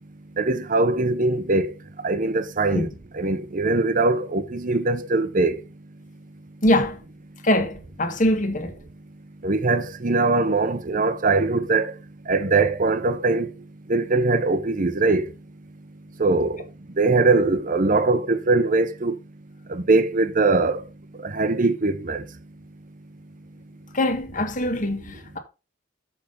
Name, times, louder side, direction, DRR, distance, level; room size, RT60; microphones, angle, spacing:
voice 1, 0.4-1.7 2.0-2.9 3.1-5.6 9.4-11.9 12.3-13.5 13.9-15.3 16.2-16.6 17.0-19.2 19.7-20.8 21.2-22.2, right 3 dB, 45° right, 0.8 m, -21 dB
voice 2, 6.6-7.0 7.4-8.7 23.9-25.4, left 1 dB, 45° left, 1.6 m, -23 dB
7.0 x 5.5 x 5.3 m
head